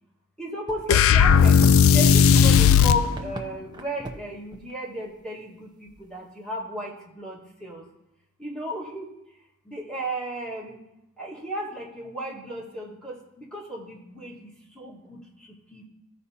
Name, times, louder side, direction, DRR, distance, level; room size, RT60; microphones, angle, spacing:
voice 1, 0.4-1.6 1.9-7.8 8.4-9.1 9.6-10.8 11.2-15.9, equal, 5° left, -5 dB, 1.6 m, -34 dB
sound 1, 0.7-2.7 3.0-3.5 3.7-4.2 4.5-4.7 5.1-5.2 5.9-6.3, right 1 dB, 20° right, 0.6 m, -39 dB
sound 2, 0.9-3.1, left 7 dB, 65° left, 0.3 m, -16 dB
14.0 x 4.9 x 2.8 m, 0.89 s
head